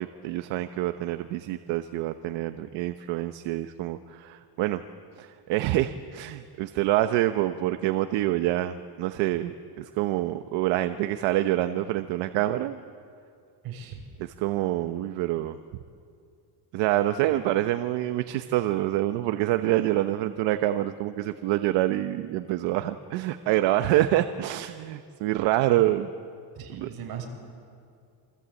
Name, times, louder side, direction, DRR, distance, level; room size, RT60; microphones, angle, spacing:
voice 1, 0.0-4.8 5.2-12.8 14.2-15.6 16.7-26.1 26.7-26.9, right 14 dB, 75° right, 9 dB, 1.0 m, -26 dB
voice 2, 13.6-14.0 26.6-27.2, right 8 dB, 55° right, 2 dB, 6.2 m, -38 dB
28.5 x 24.0 x 8.3 m, 2.4 s
cardioid pair, 160°, 44 cm